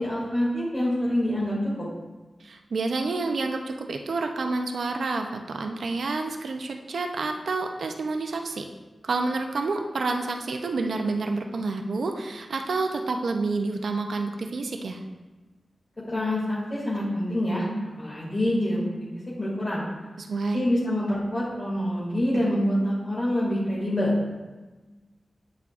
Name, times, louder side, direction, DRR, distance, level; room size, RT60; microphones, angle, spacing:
voice 1, 0.0-1.9 16.1-17.7 18.0-18.9 19.4-19.8 20.5-24.1, left 1 dB, 40° left, -8 dB, 2.4 m, -26 dB
voice 2, 2.4-8.7 9.0-15.0 20.2-20.6, right 3 dB, 80° right, 4 dB, 0.7 m, -29 dB
8.3 x 8.3 x 2.5 m, 1.2 s
wide cardioid pair, 75°, 0 cm